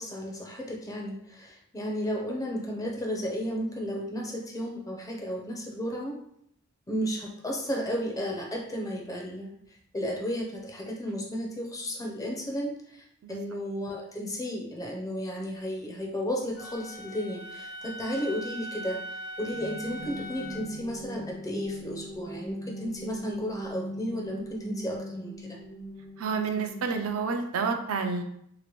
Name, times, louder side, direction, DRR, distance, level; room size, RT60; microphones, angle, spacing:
voice 1, 0.0-6.2 6.9-9.5 9.9-19.0 19.4-25.6, equal, 15° left, 0 dB, 0.5 m, -33 dB
Wind instrument woodwind instrument, 16.6-20.7, equal, 65° left, 1.0 m, -40 dB
sound 1, 19.5-27.3, equal, 90° right, 0.8 m, -41 dB
voice 2, 26.2-28.2, right 5 dB, 70° right, 6 dB, 0.4 m, -29 dB
2.9 x 2.5 x 2.9 m, 0.71 s
head